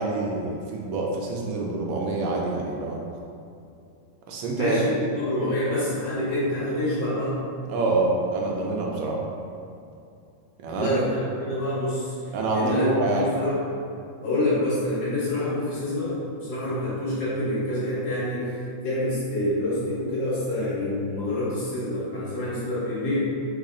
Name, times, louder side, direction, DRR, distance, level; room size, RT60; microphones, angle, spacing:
voice 1, 0.0-3.0 4.3-4.8 7.7-9.2 10.6-11.0 12.3-13.3, right 3 dB, 90° right, -1 dB, 1.4 m, -26 dB
voice 2, 4.5-7.4 10.7-13.6 14.2-23.2, left 1 dB, 65° left, -10 dB, 1.8 m, -27 dB
4.0 x 2.0 x 3.7 m, 2.5 s
omnidirectional pair, 2.1 m